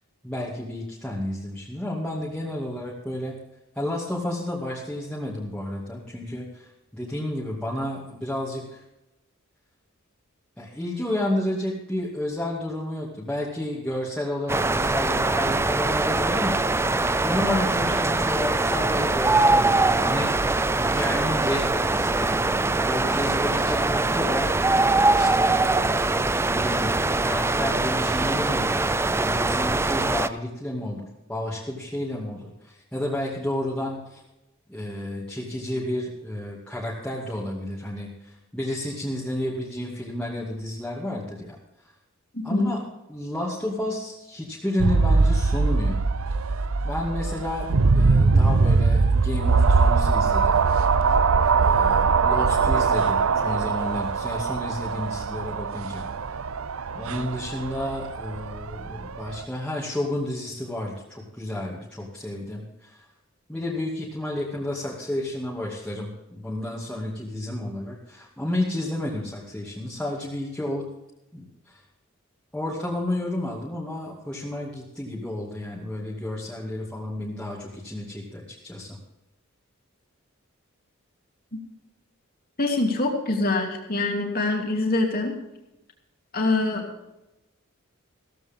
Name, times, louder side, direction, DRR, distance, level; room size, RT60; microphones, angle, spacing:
voice 1, 0.2-3.4 3.8-8.8 10.6-16.9 17.2-24.9 25.1-25.6 26.5-28.8 29.2-34.2 34.7-41.6 42.4-42.8 43.1-46.0 46.8-47.7 47.9-50.6 51.5-56.0 56.9-63.0 63.5-70.9 71.3-71.8 72.5-79.0, left 1 dB, 5° left, -6 dB, 2.4 m, -31 dB
sound 1, 14.5-30.3, right 2 dB, 10° right, 0.4 m, -22 dB
voice 2, 42.3-42.7 82.6-85.4 86.3-86.8, left 2 dB, 45° left, 1 dB, 2.8 m, -24 dB
sound 2, 44.8-59.4, right 4 dB, 75° right, 0.6 m, -22 dB
16.0 x 14.5 x 3.7 m, 0.92 s
head